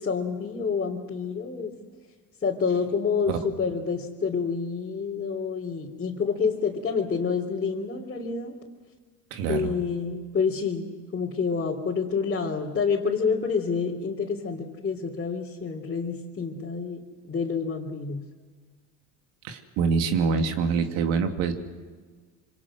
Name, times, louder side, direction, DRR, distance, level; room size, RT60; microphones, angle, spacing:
voice 1, 0.0-1.7 2.4-8.5 9.5-18.2, left 5 dB, 30° left, -4 dB, 3.4 m, -28 dB
voice 2, 9.3-9.7 19.4-21.5, right 5 dB, 90° right, 5 dB, 2.6 m, -25 dB
26.5 x 25.5 x 6.3 m, 1.5 s
supercardioid pair, 105°, 36 cm